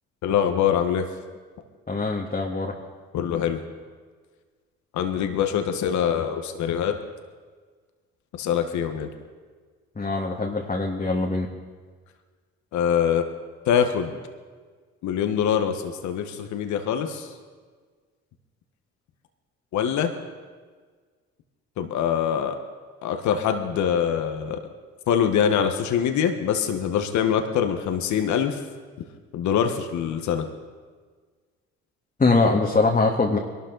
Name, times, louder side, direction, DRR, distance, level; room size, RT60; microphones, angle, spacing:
voice 1, 0.2-1.0 3.1-3.6 4.9-7.0 8.3-9.1 12.7-13.2 13.7-14.2 15.0-17.3 19.7-20.1 21.8-22.6 23.0-24.6 25.1-28.6 29.3-30.5, left 8 dB, 70° left, 6 dB, 1.3 m, -24 dB
voice 2, 1.9-2.7 10.0-11.5 32.2-33.4, left 3 dB, 25° left, -1 dB, 1.9 m, -22 dB
22.0 x 12.5 x 4.0 m, 1.5 s
supercardioid pair, 55°, 30 cm